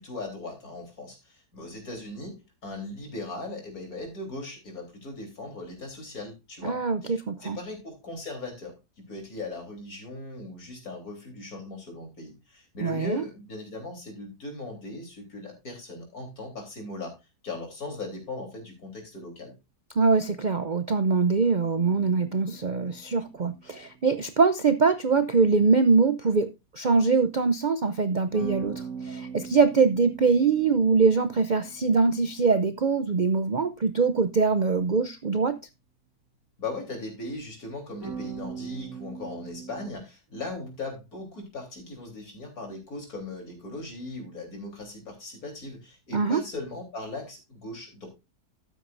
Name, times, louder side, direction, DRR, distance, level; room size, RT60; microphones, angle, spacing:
voice 1, 0.0-17.2 17.4-19.6 36.6-48.1, left 2 dB, 70° left, 4.1 m, -38 dB
voice 2, 6.6-7.6 12.8-13.2 20.0-26.5 26.7-35.6 46.1-46.4, right 4 dB, 50° right, 0.5 m, -23 dB
sound 1, 21.7-24.0 28.3-33.1 38.0-39.9, right 6 dB, 15° right, 2.5 m, -41 dB
12.5 x 9.1 x 2.5 m
omnidirectional pair, 1.6 m